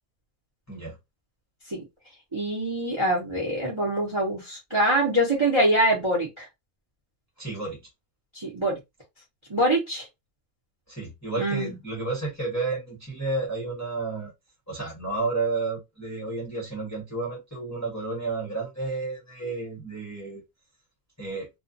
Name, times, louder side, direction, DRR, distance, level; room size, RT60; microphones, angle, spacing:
voice 1, 2.3-6.5 8.3-8.7 9.5-10.1 11.4-11.7, right 1 dB, 25° right, 0.8 m, -24 dB
voice 2, 7.4-7.8 10.9-14.3 14.7-20.4 21.2-21.5, right 3 dB, 15° left, 0.8 m, -31 dB
2.4 x 2.4 x 2.5 m
omnidirectional pair, 1.5 m